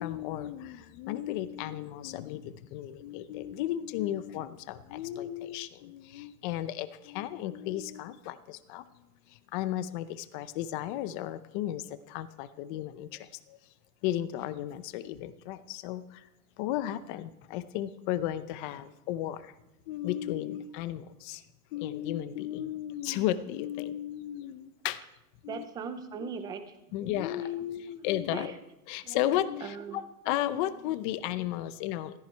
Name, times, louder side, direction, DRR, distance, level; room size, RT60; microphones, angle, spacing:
voice 1, 0.0-8.9 9.3-13.6 14.0-16.3 16.6-19.5 19.9-21.4 21.7-25.0 25.4-25.6 26.2-26.3 26.9-28.5 28.9-32.1, left 12 dB, 30° left, 14 dB, 0.7 m, -34 dB
voice 2, 25.5-26.8 28.3-28.6 29.0-29.2 29.6-30.0, right 6 dB, 10° right, 9 dB, 0.5 m, -39 dB
16.0 x 14.0 x 4.5 m, 0.90 s
supercardioid pair, 150°, 48 cm